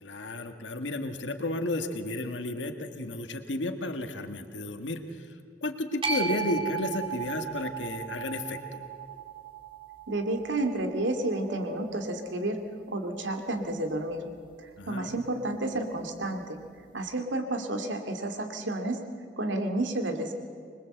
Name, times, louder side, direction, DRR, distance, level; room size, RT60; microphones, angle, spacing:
voice 1, 0.0-5.3 5.6-8.9 14.8-15.1, left 2 dB, 85° left, 6 dB, 1.5 m, -33 dB
sound 1, 6.0-12.3, right 6 dB, 30° right, 2.1 m, -36 dB
voice 2, 10.1-12.6 12.9-14.2 14.6-16.6 16.9-19.0 19.4-20.3, right 2 dB, 90° right, 5 dB, 2.3 m, -31 dB
25.5 x 21.0 x 7.8 m, 2.3 s
head